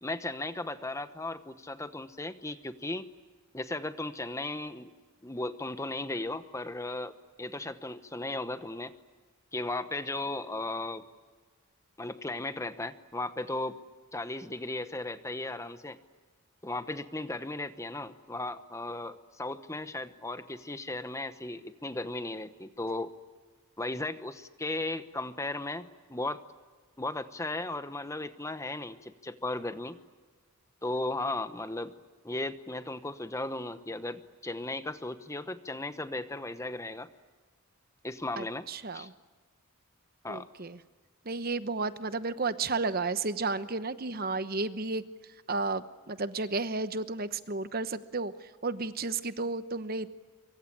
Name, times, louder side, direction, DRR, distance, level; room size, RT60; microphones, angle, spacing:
voice 1, 0.0-3.1 3.5-4.9 5.2-8.9 9.5-11.0 12.0-13.8 14.1-16.0 16.6-23.1 23.8-26.4 27.0-30.0 30.8-31.9 32.2-37.1 38.0-38.6 38.9-39.1 40.2-40.5, left 2 dB, 15° left, 11 dB, 0.9 m, -36 dB
voice 2, 38.4-39.1 40.3-40.8 41.2-50.1, right 3 dB, 40° right, 12 dB, 1.0 m, -33 dB
25.0 x 23.5 x 10.0 m, 1.4 s
head